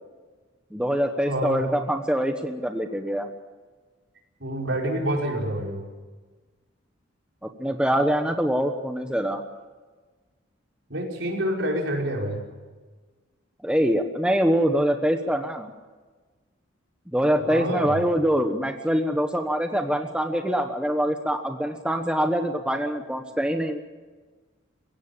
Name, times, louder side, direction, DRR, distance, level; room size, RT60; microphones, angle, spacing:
voice 1, 0.7-3.3 7.6-9.4 13.6-15.7 17.1-23.8, equal, 5° right, 5 dB, 1.2 m, -24 dB
voice 2, 1.3-1.6 4.4-5.8 10.9-12.4 17.4-18.0, right 1 dB, 70° right, -1 dB, 5.5 m, -27 dB
23.5 x 16.5 x 8.7 m, 1.4 s
head